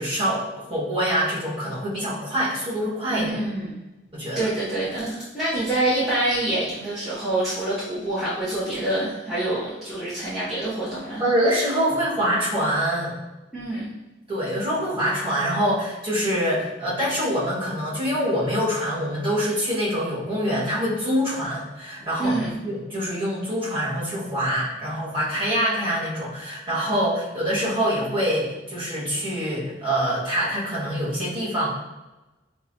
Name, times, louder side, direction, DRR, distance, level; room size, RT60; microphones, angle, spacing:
voice 1, 0.0-3.3 4.1-4.5 11.2-13.2 14.3-31.7, equal, 30° right, -9 dB, 1.4 m, -25 dB
voice 2, 3.1-3.8 4.4-11.2 13.5-13.9 22.2-22.6, right 1 dB, ahead, -13 dB, 0.7 m, -26 dB
5.3 x 2.1 x 2.7 m, 1.1 s
head